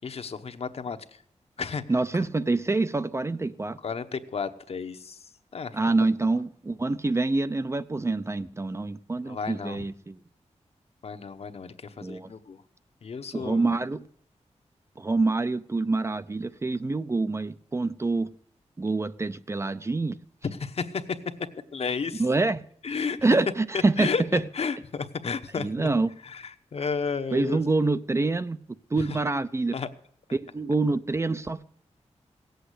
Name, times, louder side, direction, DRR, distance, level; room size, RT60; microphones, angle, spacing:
voice 1, 0.0-1.0 1.6-1.8 3.8-5.2 5.5-5.8 9.3-9.8 11.0-12.6 13.0-13.7 20.6-21.2 21.7-22.2 22.8-23.2 24.0-25.9 26.2-27.6 29.7-29.9, left 5 dB, 60° left, 1.0 m, -32 dB
voice 2, 1.9-3.8 5.7-10.2 12.0-12.3 13.3-14.0 15.0-18.3 18.8-20.2 22.2-22.6 23.2-24.5 25.6-26.1 27.3-28.6 28.9-29.7 30.3-31.6, right 3 dB, 25° right, 0.5 m, -26 dB
17.5 x 8.0 x 8.2 m
wide cardioid pair, 140°, 12 cm